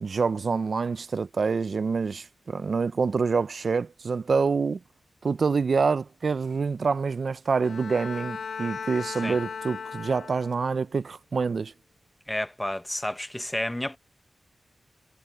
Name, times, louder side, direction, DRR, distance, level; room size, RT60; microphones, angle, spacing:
voice 1, 0.0-4.8 5.2-11.7, right 5 dB, 60° right, 0.4 m, -26 dB
Bowed string instrument, 7.6-10.8, left 6 dB, 85° left, 4.5 m, -37 dB
voice 2, 12.3-14.0, left 1 dB, 10° left, 0.8 m, -31 dB
wide cardioid pair, 85°, 0 cm